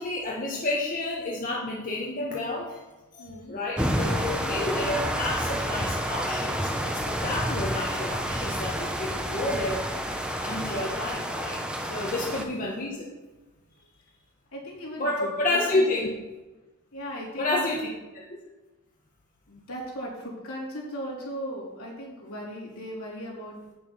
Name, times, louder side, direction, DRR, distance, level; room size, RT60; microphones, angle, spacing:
voice 1, 0.0-2.8 3.1-13.1 15.0-16.1 17.4-17.9, left 2 dB, 35° left, -3 dB, 1.1 m, -30 dB
voice 2, 3.2-3.6 13.7-14.2 14.5-16.0 16.9-17.7 19.5-23.6, equal, 70° left, -5 dB, 3.6 m, -38 dB
sound 1, 3.8-12.4, equal, 5° right, 0.7 m, -29 dB
8.8 x 6.6 x 5.5 m, 1.2 s
head